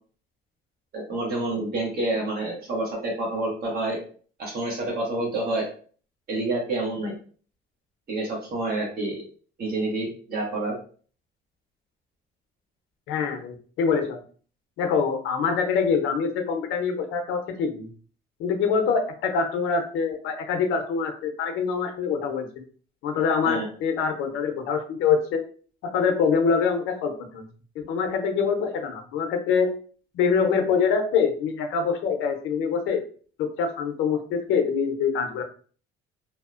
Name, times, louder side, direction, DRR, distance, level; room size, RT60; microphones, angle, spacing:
voice 1, 0.9-4.0 4.4-5.7 6.3-7.2 8.1-9.3 9.6-10.8 23.4-23.6, right 2 dB, 50° right, -3 dB, 1.0 m, -28 dB
voice 2, 13.1-14.2 14.8-17.9 18.4-22.6 23.0-25.4 25.9-27.4 27.9-29.8 30.1-33.0 33.4-35.4, left 6 dB, 75° left, 5 dB, 0.6 m, -25 dB
2.7 x 2.0 x 2.4 m, 0.43 s
cardioid pair, 90°, 21 cm